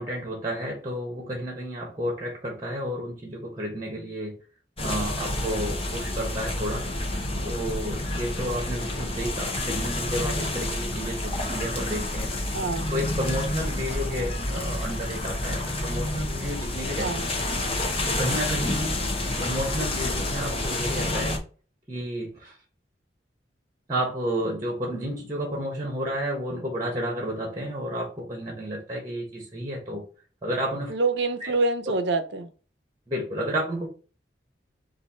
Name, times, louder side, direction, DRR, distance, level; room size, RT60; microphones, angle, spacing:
voice 1, 0.0-4.3 4.8-6.8 7.4-12.3 12.9-17.1 18.2-19.0 19.4-21.4 21.9-22.5 23.9-30.0 30.4-30.9 31.4-31.5 33.1-33.9, equal, 20° right, 1 dB, 1.1 m, -31 dB
sound 1, 4.8-21.4, left 1 dB, 35° left, 0.9 m, -29 dB
voice 2, 12.5-13.0 17.0-17.3 30.9-32.5, right 3 dB, 70° right, 8 dB, 0.6 m, -26 dB
4.2 x 2.6 x 4.2 m, 0.37 s
head